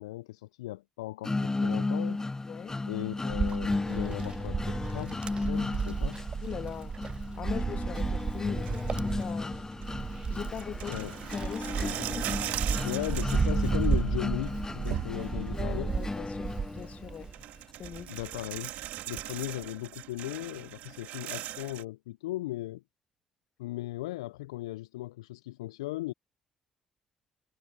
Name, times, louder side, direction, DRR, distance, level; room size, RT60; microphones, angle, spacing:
voice 1, 0.0-2.2 2.9-6.2 10.9-11.2 12.8-15.9 18.1-18.7 19.1-22.8 23.6-26.1, left 17 dB, 80° left, 0.7 m, -37 dB
sound 1, 1.2-17.2, left 3 dB, 20° left, 1.1 m, -34 dB
voice 2, 2.5-2.8 6.4-7.0 7.3-9.6 9.9-11.0 11.3-12.7 15.5-17.3 17.8-18.1, left 8 dB, 50° left, 2.6 m, -41 dB
Wind, 3.3-17.4 17.8-19.3, right 5 dB, 35° right, 0.4 m, -33 dB
sound 2, 8.6-9.3 9.8-9.9 10.5-14.1 14.4-15.6 16.8-16.9 17.2-21.8, right 15 dB, 65° right, 2.4 m, -40 dB
figure-of-eight pair, 50°, 3 cm